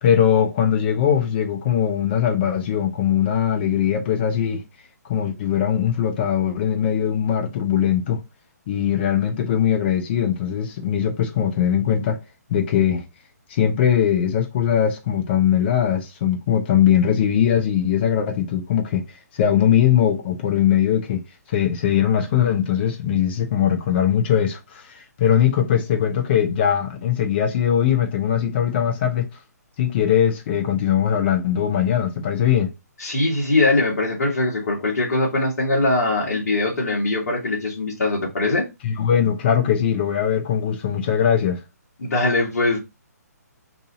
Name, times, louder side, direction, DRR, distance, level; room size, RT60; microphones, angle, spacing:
voice 1, 0.0-4.6 5.1-8.2 8.7-12.2 12.5-13.0 13.5-19.0 19.3-21.2 21.5-29.3 29.8-32.7 38.8-41.6, left 9 dB, 35° left, 0.8 m, -20 dB
voice 2, 33.0-38.6 42.0-42.8, left 2 dB, 65° left, 1.3 m, -21 dB
2.7 x 2.7 x 3.7 m
figure-of-eight pair, 135°, 9 cm